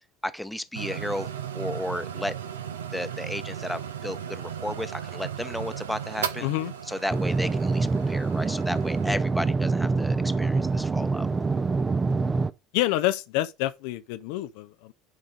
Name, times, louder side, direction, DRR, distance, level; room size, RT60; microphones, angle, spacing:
voice 1, 0.2-1.3 1.5-2.3 2.9-6.5 6.9-11.3, left 1 dB, 5° left, 0.9 m, -33 dB
sound 1, 0.7-9.2, right 8 dB, 75° right, 0.7 m, -36 dB
voice 2, 6.4-6.7 12.7-14.9, left 16 dB, 60° left, 0.5 m, -27 dB
sound 2, 7.1-12.5, right 4 dB, 20° right, 0.6 m, -25 dB
10.5 x 5.0 x 4.0 m
figure-of-eight pair, 65°, 0 cm